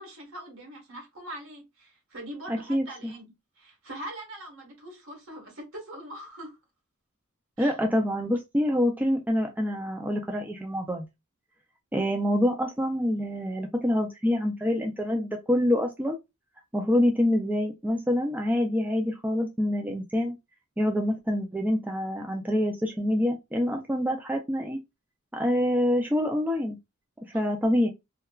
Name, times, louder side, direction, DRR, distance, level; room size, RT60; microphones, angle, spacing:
voice 1, 0.0-6.6 7.6-7.8 27.3-27.4, right 1 dB, 70° right, 1.2 m, -42 dB
voice 2, 2.5-3.1 7.6-11.1 11.9-16.2 16.7-20.3 20.8-24.8 25.3-26.8 27.3-27.9, left 1 dB, 10° right, 0.3 m, -26 dB
2.8 x 2.3 x 2.3 m
head